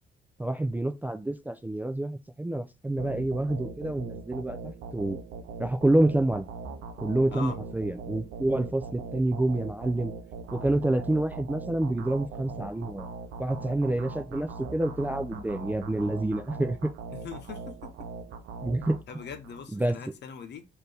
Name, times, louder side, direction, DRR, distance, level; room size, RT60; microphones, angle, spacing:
voice 1, 0.4-5.2 5.6-6.5 7.0-10.1 10.5-13.1 13.4-16.9 18.6-19.0 19.7-20.0, right 1 dB, 10° right, 0.3 m, -28 dB
sound 1, 3.0-19.6, right 4 dB, 85° right, 0.6 m, -41 dB
voice 2, 17.1-18.1 19.1-20.7, left 6 dB, 60° left, 0.9 m, -41 dB
4.2 x 2.8 x 3.3 m
cardioid pair, 90°, 20 cm